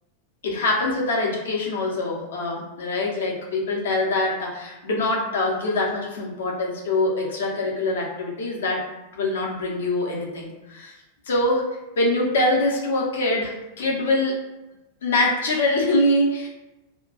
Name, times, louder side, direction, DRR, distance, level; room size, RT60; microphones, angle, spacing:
voice 1, 0.4-8.8 9.1-10.9 11.3-11.6 12.0-14.3 15.0-16.5, left 2 dB, 60° left, -2 dB, 0.7 m, -24 dB
2.3 x 2.2 x 3.7 m, 0.99 s
figure-of-eight pair, 90°, 0 cm